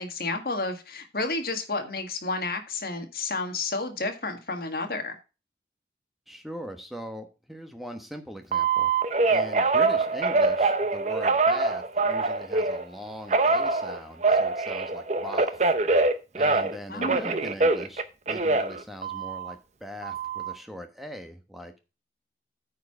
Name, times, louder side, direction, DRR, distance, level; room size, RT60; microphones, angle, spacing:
voice 1, 0.0-5.2 16.9-17.4, left 3 dB, 55° left, 1.6 m, -31 dB
voice 2, 6.3-8.9 9.3-15.6 16.3-21.8, equal, ahead, 1.1 m, -41 dB
Telephone, 8.5-12.8 13.3-16.8 17.0-19.5 20.0-20.5, right 3 dB, 40° right, 0.7 m, -24 dB
9.4 x 4.7 x 5.8 m
head